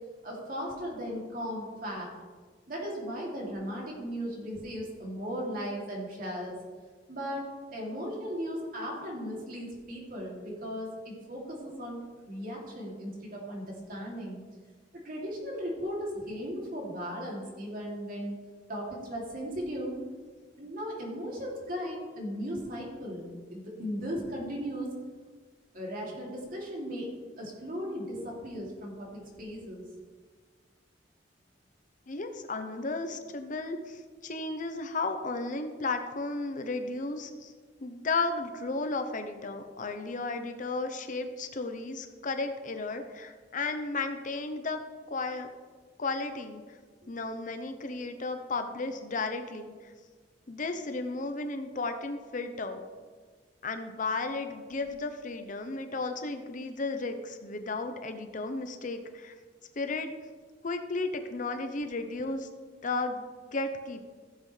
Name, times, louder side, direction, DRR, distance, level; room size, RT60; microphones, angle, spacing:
voice 1, 0.2-2.1 2.7-6.6 7.1-14.4 14.9-18.3 18.7-20.0 20.5-24.9 25.7-27.1 27.4-29.9, equal, 55° right, -3 dB, 2.8 m, -37 dB
voice 2, 32.1-37.5 37.8-44.8 45.1-45.5 46.0-46.6 47.1-49.7 50.5-52.8 53.6-59.3 59.8-60.1 60.6-62.5 62.8-64.1, left 3 dB, 45° left, 7 dB, 0.8 m, -34 dB
15.0 x 7.8 x 3.3 m, 1.5 s
head